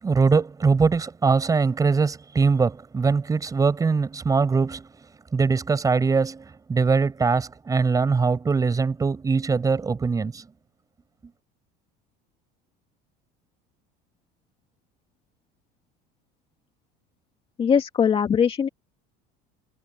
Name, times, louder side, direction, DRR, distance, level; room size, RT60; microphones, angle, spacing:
voice 1, 0.0-4.9 5.3-10.4, right 4 dB, 15° right, 7.4 m, -22 dB
voice 2, 17.6-18.7, left 7 dB, 30° left, 2.4 m, -21 dB
cardioid pair, 145°, 20 cm